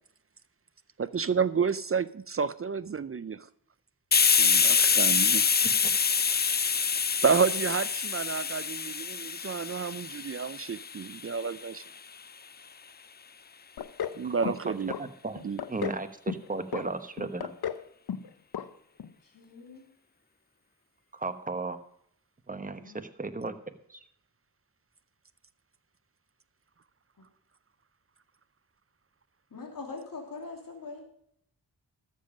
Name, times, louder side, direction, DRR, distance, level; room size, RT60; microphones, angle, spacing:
voice 1, 1.0-3.5 4.4-5.4 7.2-11.8 14.2-14.9 15.4-15.6, right 6 dB, 35° right, 0.5 m, -30 dB
Hiss, 4.1-11.5, left 6 dB, 25° left, 0.4 m, -26 dB
sound 1, 13.8-14.2 14.5-15.0 15.4-16.0 16.3-16.8 17.2-17.8 18.1-18.3 18.5-18.7 19.0-19.1, left 8 dB, 75° left, 0.8 m, -34 dB
voice 2, 14.4-15.4 15.7-17.5 21.1-21.8 22.5-23.6, right 3 dB, 20° right, 1.2 m, -35 dB
voice 3, 19.3-19.8 22.8-23.0 29.5-31.0, left 3 dB, 60° left, 3.0 m, -42 dB
13.0 x 7.3 x 5.1 m
cardioid pair, 60°, 38 cm